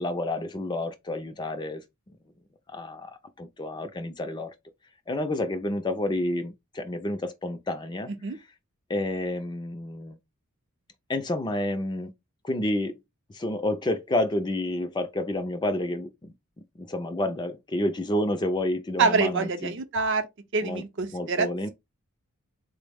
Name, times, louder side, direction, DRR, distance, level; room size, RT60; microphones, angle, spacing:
voice 1, 0.0-1.8 2.7-4.5 5.1-8.1 8.9-10.2 11.1-12.1 12.4-13.0 13.3-16.3 16.8-19.7 20.6-20.8 21.1-21.7, left 1 dB, 20° left, 0.3 m, -29 dB
voice 2, 19.0-20.3 20.5-21.5, right 4 dB, 55° right, 0.6 m, -25 dB
3.8 x 2.0 x 3.4 m
head